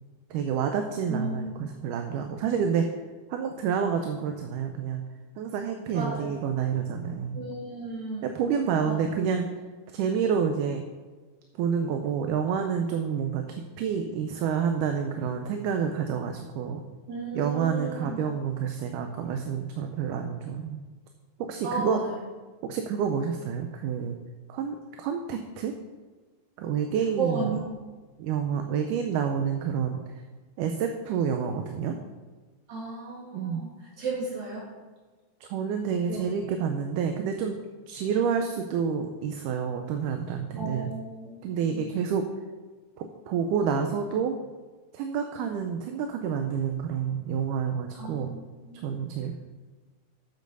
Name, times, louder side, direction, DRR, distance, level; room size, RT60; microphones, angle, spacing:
voice 1, 0.3-2.9 3.3-5.0 5.4-7.4 8.2-9.5 9.9-10.8 11.6-16.8 17.4-20.8 21.4-22.0 22.6-24.2 24.5-25.7 26.6-27.5 28.2-30.2 30.6-31.9 33.3-33.6 35.4-37.5 37.9-40.9 41.4-42.2 43.0-44.4 44.9-48.3 48.8-49.4, right 7 dB, 80° right, 5 dB, 2.2 m, -28 dB
voice 2, 1.1-1.5 5.9-6.3 7.3-8.3 8.8-9.1 17.1-18.3 21.6-22.2 27.2-27.7 32.7-34.7 36.1-36.2 40.5-41.9 47.9-48.9, right 3 dB, 60° right, -5 dB, 4.1 m, -34 dB
8.3 x 6.4 x 6.7 m, 1.4 s
omnidirectional pair, 3.7 m